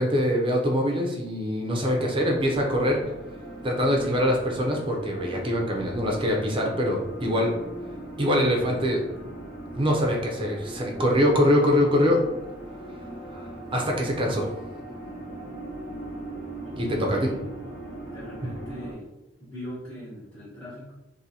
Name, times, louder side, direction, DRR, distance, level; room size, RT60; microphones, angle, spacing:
voice 1, 0.0-3.0 3.6-7.5 8.2-9.0 9.7-12.2 13.3-13.5 13.7-14.5 16.8-17.3, equal, 25° right, 0 dB, 0.5 m, -23 dB
sound 1, 1.9-18.9, right 1 dB, 75° left, 1.1 m, -39 dB
voice 2, 16.6-17.5 18.0-19.1 19.4-20.9, equal, 10° left, -10 dB, 0.9 m, -40 dB
2.7 x 2.7 x 4.1 m, 1.0 s
head